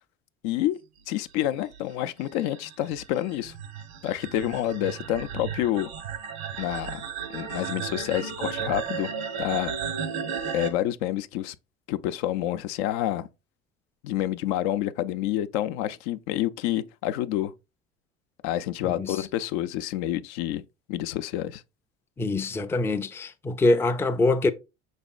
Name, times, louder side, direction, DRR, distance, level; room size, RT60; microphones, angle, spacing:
voice 1, 0.4-0.8 1.1-3.5 4.0-5.9 6.6-7.0 7.3-9.1 9.4-9.7 10.5-11.6 11.9-13.3 14.0-17.5 18.4-20.6 20.9-21.6, left 13 dB, 75° left, 0.5 m, -28 dB
sound 1, 1.4-10.7, right 7 dB, 85° right, 0.9 m, -34 dB
voice 2, 18.8-19.2 22.2-24.5, left 2 dB, 10° left, 0.3 m, -24 dB
5.2 x 4.0 x 2.3 m
supercardioid pair, 85°, 32 cm